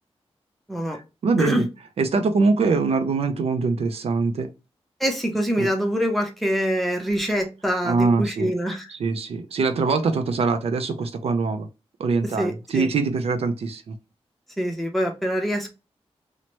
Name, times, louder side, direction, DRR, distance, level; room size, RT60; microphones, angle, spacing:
voice 1, 0.9-1.6 2.0-4.5 5.6-5.7 7.8-8.5 8.9-11.7 12.0-13.9, right 4 dB, 65° right, 0.4 m, -23 dB
voice 2, 5.0-8.9 12.4-12.9 14.6-15.7, equal, ahead, 0.6 m, -25 dB
2.8 x 2.1 x 2.9 m
wide cardioid pair, 140°, 11 cm